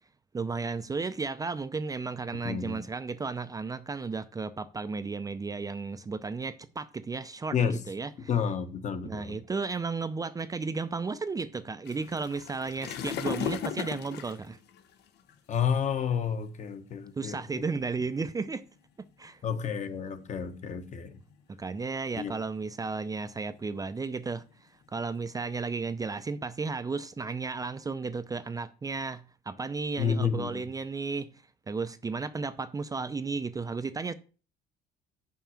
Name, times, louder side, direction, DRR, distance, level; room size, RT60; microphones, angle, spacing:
voice 1, 0.3-7.6 7.9-8.3 9.0-14.6 17.2-18.6 19.2-19.4 21.6-34.1, right 4 dB, 20° right, 0.5 m, -34 dB
voice 2, 2.4-2.8 7.5-7.8 8.3-9.4 15.5-17.4 19.4-21.2 22.2-22.3 30.0-30.6, left 7 dB, 45° left, 1.3 m, -30 dB
sound 1, 11.8-15.4 16.1-16.3 17.0-17.1 17.4-17.6 18.2-18.7 19.6-20.7 21.1-21.6 22.1-22.4 22.8-25.5, left 8 dB, 80° left, 1.1 m, -38 dB
6.1 x 5.7 x 7.1 m
cardioid pair, 110°, 17 cm